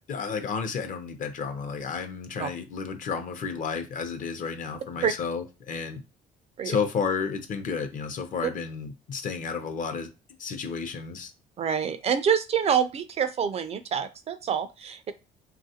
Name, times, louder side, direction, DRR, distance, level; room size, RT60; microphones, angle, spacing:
voice 1, 0.0-6.0 6.6-10.1 10.4-11.3, left 5 dB, 50° left, 0.7 m, -32 dB
voice 2, 11.6-15.1, right 7 dB, 40° right, 0.3 m, -26 dB
3.3 x 2.3 x 2.7 m
cardioid pair, 110°, 17 cm